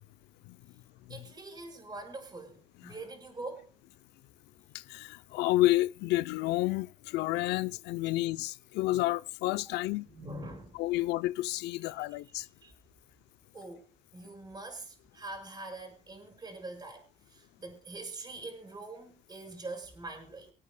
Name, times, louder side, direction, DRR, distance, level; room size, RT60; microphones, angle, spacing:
voice 1, 1.1-3.7 9.5-9.8 10.1-10.8 11.9-12.0 12.4-12.7 13.5-17.0 17.3-20.5, right 2 dB, 25° right, 5.2 m, -44 dB
voice 2, 4.7-10.1 10.8-12.5, left 17 dB, 85° left, 0.6 m, -30 dB
25.5 x 8.6 x 2.3 m
cardioid pair, 110°, 17 cm